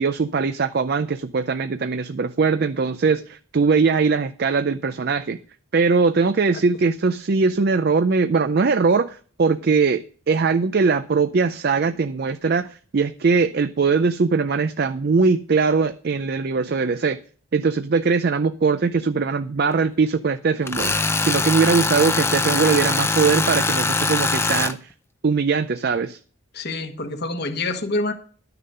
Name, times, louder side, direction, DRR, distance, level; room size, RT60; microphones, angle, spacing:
voice 1, 0.0-5.4 5.7-17.2 17.5-20.9 21.2-24.9 25.2-26.2, right 4 dB, 45° right, 0.4 m, -21 dB
Tools, 20.7-24.7, left 3 dB, 10° left, 0.5 m, -22 dB
voice 2, 26.5-28.1, left 2 dB, 50° left, 1.2 m, -26 dB
12.0 x 6.7 x 5.5 m
head